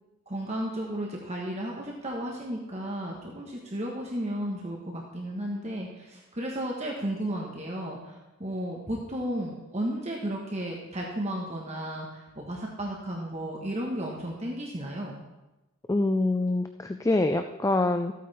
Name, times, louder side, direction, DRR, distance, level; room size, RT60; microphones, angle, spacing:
voice 1, 0.3-15.2, right 1 dB, 30° right, -1 dB, 1.2 m, -34 dB
voice 2, 15.9-18.1, left 2 dB, 15° left, 7 dB, 0.3 m, -25 dB
14.0 x 8.4 x 4.2 m, 1.0 s
head